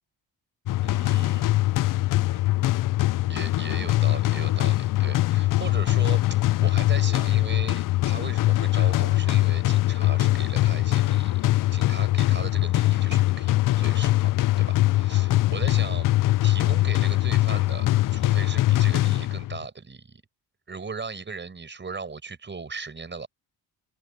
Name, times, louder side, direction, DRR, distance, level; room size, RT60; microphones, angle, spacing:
sound 1, 0.7-19.6, left 16 dB, 55° left, 0.5 m, -22 dB
voice 1, 0.8-2.6 3.2-11.4 11.7-16.1 16.4-20.2 20.7-23.3, right 4 dB, 25° right, 5.7 m, -38 dB
cardioid pair, 105°, 40 cm